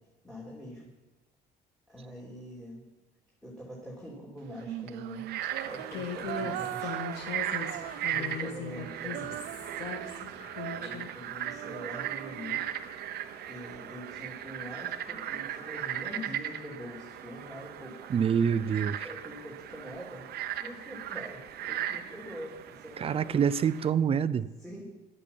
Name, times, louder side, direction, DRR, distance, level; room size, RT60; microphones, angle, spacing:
voice 1, 0.2-0.8 1.9-2.9 3.4-7.1 7.5-9.4 10.0-10.3 10.7-12.7 13.5-18.1 19.0-20.3 20.6-23.5 24.6-24.8, equal, 5° left, -3 dB, 2.8 m, -44 dB
Female singing, 4.5-8.4 8.7-13.0, right 15 dB, 90° right, 0.5 m, -41 dB
Frog, 5.1-23.9, right 11 dB, 70° right, 0.9 m, -38 dB
Human voice, 5.9-11.1, left 5 dB, 90° left, 2.3 m, -39 dB
voice 2, 18.1-19.1 23.0-24.5, right 7 dB, 35° right, 15 dB, 0.5 m, -26 dB
11.0 x 8.3 x 7.1 m, 1.2 s
cardioid pair, 110°, 17 cm